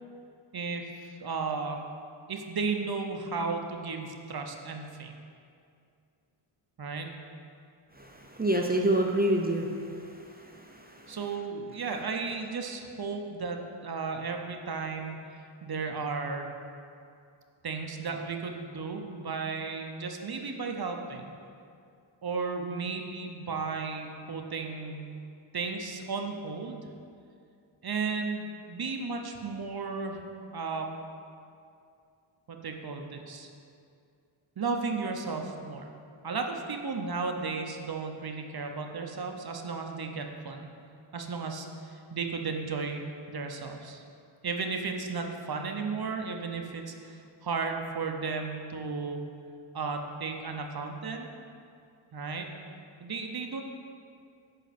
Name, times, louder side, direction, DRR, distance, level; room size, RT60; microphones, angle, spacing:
voice 1, 0.5-1.8 2.3-5.1 6.8-7.1 11.1-16.5 17.6-21.3 22.2-25.0 25.5-26.9 27.8-30.2 30.5-30.9 32.5-33.5 34.6-35.9 36.2-40.7 41.1-43.0 43.3-44.0 44.4-49.2 49.7-51.3 52.1-52.5 53.0-53.6, right 4 dB, 50° right, 4 dB, 0.8 m, -34 dB
voice 2, 7.9-11.2, right 1 dB, 20° right, 1 dB, 0.6 m, -29 dB
9.2 x 5.7 x 4.2 m, 2.4 s
wide cardioid pair, 100°, 50 cm